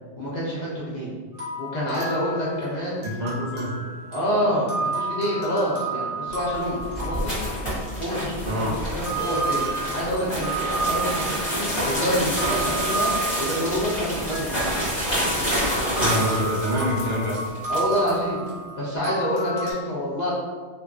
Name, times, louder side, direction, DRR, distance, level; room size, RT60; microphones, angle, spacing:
voice 1, 0.2-1.1 1.6-3.1 4.1-7.4 8.0-13.1 13.4-14.6 17.7-18.4 18.8-20.3, equal, 50° left, -7 dB, 0.6 m, -27 dB
sound 1, 1.3-8.5 9.1-19.7, right 2 dB, 55° right, 1.0 m, -32 dB
voice 2, 3.2-3.7 8.4-9.0 16.0-17.3, equal, 85° right, -4 dB, 1.1 m, -26 dB
sound 2, 6.4-18.1, equal, 25° left, 1.1 m, -28 dB
sound 3, 9.2-11.1, left 1 dB, 75° left, 0.9 m, -39 dB
2.5 x 2.4 x 2.3 m, 1.5 s
omnidirectional pair, 1.2 m